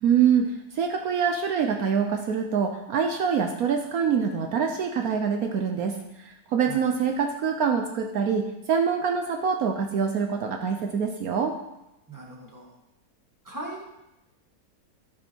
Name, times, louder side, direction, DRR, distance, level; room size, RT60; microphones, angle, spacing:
voice 1, 0.0-11.6, right 7 dB, 70° right, 4 dB, 1.2 m, -25 dB
voice 2, 12.1-12.8 13.4-13.8, right 2 dB, 10° right, -3 dB, 1.9 m, -39 dB
13.5 x 6.3 x 4.5 m, 0.91 s
omnidirectional pair, 1.7 m